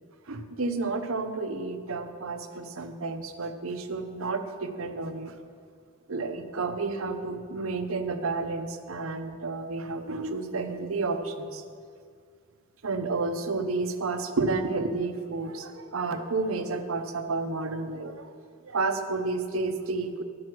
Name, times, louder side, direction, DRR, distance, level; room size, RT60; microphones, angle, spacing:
voice 1, 0.3-5.3 6.1-11.6 12.8-18.3 18.6-20.2, right 3 dB, 80° right, 7 dB, 0.8 m, -31 dB
11.5 x 6.2 x 6.1 m, 2.1 s
head